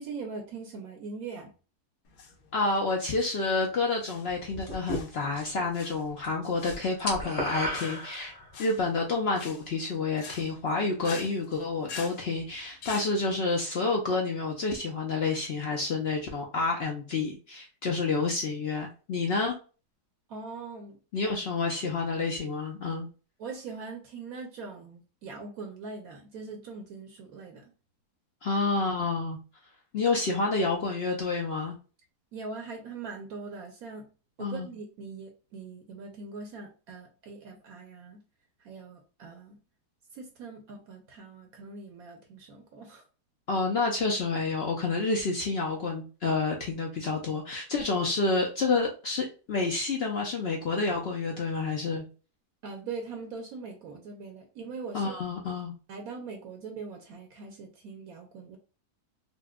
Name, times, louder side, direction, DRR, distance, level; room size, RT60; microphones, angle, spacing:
voice 1, 0.0-1.5 20.3-21.0 23.4-27.7 32.3-34.1 34.4-38.2 38.6-39.6 40.1-43.0 52.6-55.2 55.9-58.6, right 4 dB, 70° right, 3 dB, 1.0 m, -41 dB
sound 1, 2.0-13.1, left 5 dB, 90° left, 1.2 m, -46 dB
voice 2, 2.5-8.3 8.6-19.5 21.1-23.1 28.4-29.4 29.9-31.7 34.4-34.7 43.5-52.1 54.9-55.7, left 3 dB, 65° left, 1 dB, 0.6 m, -29 dB
sound 2, 4.7-5.6 5.9-6.3 6.5-8.6, equal, 30° left, 0.9 m, -34 dB
4.2 x 2.2 x 2.2 m, 0.34 s
omnidirectional pair, 1.7 m